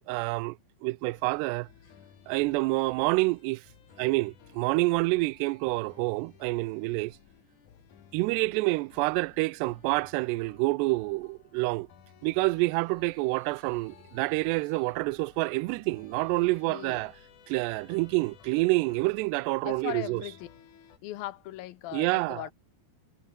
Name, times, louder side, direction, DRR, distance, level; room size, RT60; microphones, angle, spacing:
voice 1, 0.1-0.6 0.8-1.7 2.3-3.6 4.0-7.2 8.1-11.9 12.2-17.1 17.5-20.2 21.9-22.4, right 23 dB, 85° right, 2.7 m, -27 dB
sound 1, 1.1-21.0, left 9 dB, 55° left, 3.1 m, -57 dB
voice 2, 16.4-17.1 19.6-20.5 21.0-22.5, left 15 dB, 70° left, 2.5 m, -39 dB
omnidirectional pair, 4.8 m